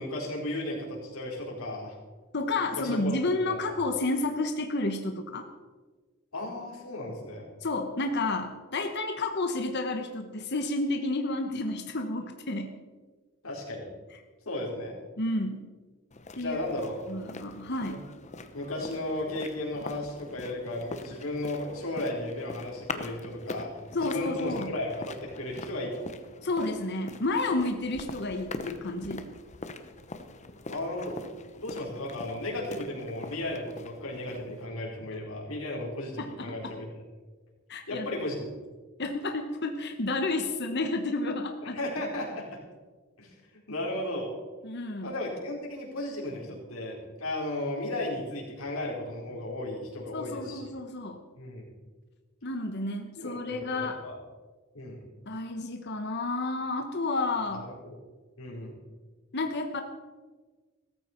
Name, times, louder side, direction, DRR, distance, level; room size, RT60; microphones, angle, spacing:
voice 1, 0.0-1.9 2.8-3.2 3.4-3.7 6.3-7.4 13.4-13.9 14.5-15.0 16.4-17.0 17.9-18.0 18.5-23.7 24.0-26.1 30.7-31.2 31.6-37.0 37.9-38.5 41.7-42.6 43.2-43.3 43.7-44.3 45.0-50.7 51.4-51.6 53.2-54.1 54.7-55.0 57.5-58.0 58.4-58.7, left 1 dB, 80° left, -2 dB, 4.4 m, -35 dB
voice 2, 2.3-5.5 7.6-12.8 15.2-15.6 16.4-16.7 17.1-18.0 23.9-24.7 26.4-29.3 36.2-36.8 37.7-38.1 39.0-41.8 44.6-45.1 50.1-51.2 52.4-54.0 55.3-57.7 59.3-59.8, left 2 dB, 55° left, 5 dB, 1.1 m, -31 dB
sound 1, 16.1-34.7, left 3 dB, 35° left, 1.0 m, -43 dB
16.5 x 14.0 x 4.5 m, 1.4 s
head